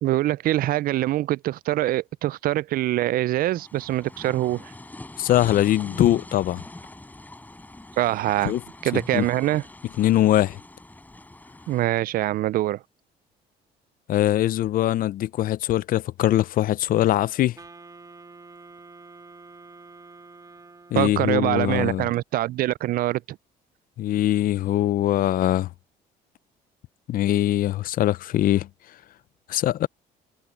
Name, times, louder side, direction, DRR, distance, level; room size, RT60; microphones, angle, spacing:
voice 1, 0.0-4.7 8.0-8.6 8.8-9.6 11.7-12.8 20.9-23.4, right 15 dB, 60° right, 0.4 m, -24 dB
sound 1, 3.4-11.8, left 2 dB, 10° left, 5.5 m, -43 dB
voice 2, 5.2-6.6 8.5-8.6 9.1-9.3 10.0-10.6 14.1-17.6 20.9-22.1 24.0-25.7 27.1-28.7 29.5-29.9, left 13 dB, 55° left, 0.5 m, -22 dB
Wind instrument woodwind instrument, 17.6-21.4, right 3 dB, 20° right, 2.1 m, -47 dB
cardioid pair, 110°, 17 cm